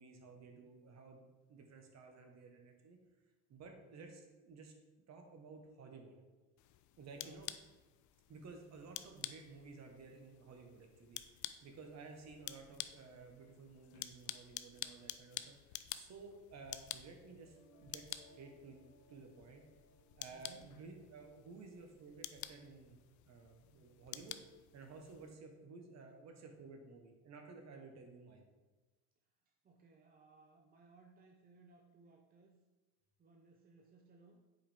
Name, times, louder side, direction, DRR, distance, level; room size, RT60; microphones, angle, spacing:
voice 1, 0.0-3.0 3.5-4.7 5.1-6.2 7.0-7.5 8.3-11.2 11.6-18.8 19.1-19.7 20.2-23.0 23.3-24.4 24.7-28.5, right 4 dB, 40° right, 4 dB, 1.3 m, -54 dB
voice 2, 3.8-4.1 7.1-7.4 11.8-12.1 20.3-20.7 29.5-32.6 33.2-34.5, right 3 dB, 25° right, 2 dB, 0.6 m, -64 dB
sound 1, 6.6-25.4, left 13 dB, 50° left, 0.5 m, -50 dB
sound 2, 17.2-23.2, equal, 30° left, 1.4 m, -69 dB
7.5 x 4.8 x 3.5 m, 1.2 s
supercardioid pair, 105°, 40 cm